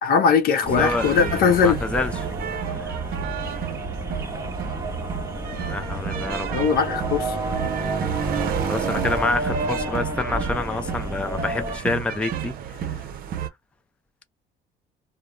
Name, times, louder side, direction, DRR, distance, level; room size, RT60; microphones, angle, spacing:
voice 1, 0.0-1.8 6.5-7.3, left 6 dB, 60° left, 0.7 m, -20 dB
sound 1, 0.6-11.8, right 1 dB, 20° right, 0.8 m, -30 dB
sound 2, 0.7-13.5, right 8 dB, 60° right, 0.6 m, -31 dB
voice 2, 0.8-2.3 2.8-2.9 5.7-6.5 8.7-13.0, left 3 dB, 5° left, 0.4 m, -28 dB
2.3 x 2.0 x 3.0 m
cardioid pair, 110°, 17 cm